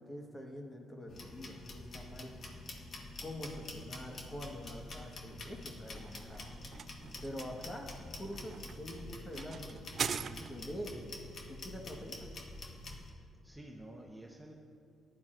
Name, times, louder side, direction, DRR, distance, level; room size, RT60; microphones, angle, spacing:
voice 1, 0.0-2.6 3.2-6.5 7.2-11.1 11.5-12.3, equal, 20° left, 1 dB, 1.4 m, -45 dB
sound 1, 1.1-13.1, left 2 dB, 50° left, 1.4 m, -47 dB
sound 2, 5.7-10.9, right 6 dB, 50° right, 0.3 m, -42 dB
voice 2, 13.2-14.5, right 1 dB, ahead, -1 dB, 1.0 m, -51 dB
15.0 x 11.0 x 2.6 m, 2.3 s
cardioid pair, 90°, 0 cm